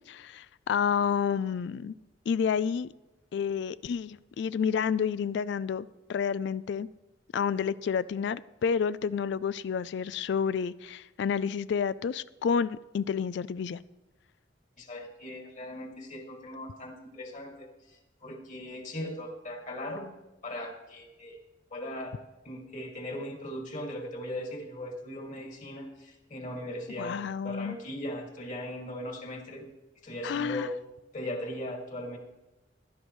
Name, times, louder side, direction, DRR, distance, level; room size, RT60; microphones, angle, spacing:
voice 1, 0.1-1.9 2.3-2.9 3.3-6.9 7.3-13.8 27.0-27.8 30.2-30.7, left 7 dB, 65° left, 17 dB, 0.3 m, -30 dB
voice 2, 14.8-20.1 20.4-21.4 21.7-22.2 22.4-29.6 30.0-30.7 31.1-32.2, left 1 dB, 40° left, 1 dB, 2.3 m, -39 dB
16.0 x 11.5 x 3.2 m, 1.0 s
head